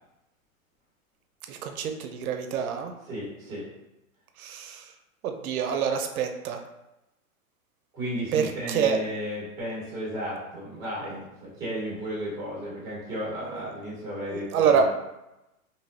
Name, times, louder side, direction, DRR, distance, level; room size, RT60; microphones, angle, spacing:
voice 1, 1.5-2.9 4.4-4.9 5.2-6.6 8.3-9.0 13.5-13.7 14.3-14.8, right 7 dB, 85° right, 6 dB, 0.5 m, -26 dB
voice 2, 3.1-3.6 7.9-14.8, equal, 10° right, -6 dB, 1.1 m, -34 dB
3.2 x 2.7 x 2.6 m, 0.94 s
hypercardioid pair, 160°, 42 cm